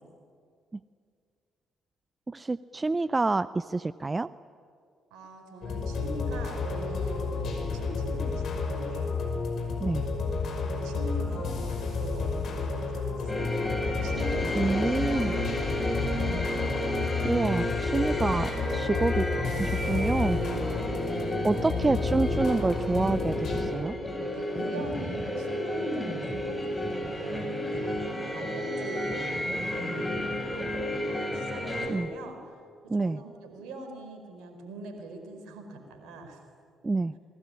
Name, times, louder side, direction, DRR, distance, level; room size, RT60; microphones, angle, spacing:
voice 1, 2.3-4.3 9.8-10.1 14.5-15.3 17.2-19.3 19.5-20.4 21.4-23.9 31.9-32.1 32.9-33.2 36.8-37.1, right 3 dB, 25° right, 17 dB, 0.6 m, -27 dB
voice 2, 5.1-9.2 10.6-13.5 13.8-16.2 20.4-20.7 21.5-22.6 24.3-28.0 28.3-32.5 32.9-36.4, right 2 dB, 70° right, 5 dB, 4.6 m, -42 dB
sound 1, 5.6-23.6, left 4 dB, 55° left, 5.7 m, -31 dB
sound 2, 13.3-31.9, left 1 dB, 15° left, 7.4 m, -32 dB
27.0 x 20.5 x 9.9 m, 2.3 s
hypercardioid pair, 45°, 0 cm